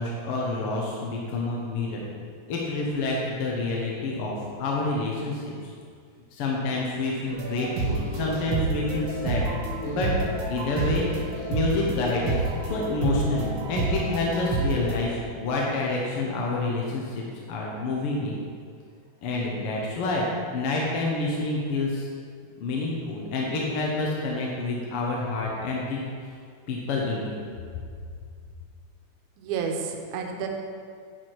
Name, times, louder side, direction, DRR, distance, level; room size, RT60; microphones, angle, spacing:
voice 1, 0.0-2.0 2.5-5.4 6.3-9.5 9.8-10.1 10.5-11.0 11.5-12.4 12.7-17.0 17.5-18.4 19.2-20.2 20.5-22.1 22.6-26.1 26.7-27.3, left 2 dB, 65° left, -3 dB, 1.5 m, -28 dB
sound 1, 7.3-15.0, right 2 dB, 60° right, 1.9 m, -29 dB
voice 2, 29.4-30.5, right 6 dB, 80° right, 2 dB, 2.2 m, -30 dB
10.0 x 4.8 x 4.6 m, 2.2 s
omnidirectional pair, 3.5 m